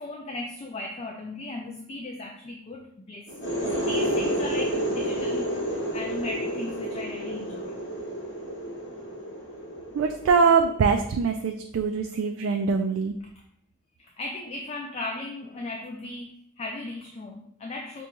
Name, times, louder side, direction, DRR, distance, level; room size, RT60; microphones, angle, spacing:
voice 1, 0.0-3.3 3.6-7.8 14.0-18.1, left 2 dB, 30° left, 2 dB, 0.3 m, -37 dB
sound 1, 3.3-10.8, right 1 dB, 65° left, 1.1 m, -30 dB
voice 2, 9.9-13.2, right 5 dB, 85° right, 4 dB, 0.3 m, -23 dB
5.0 x 2.3 x 3.0 m, 0.69 s
head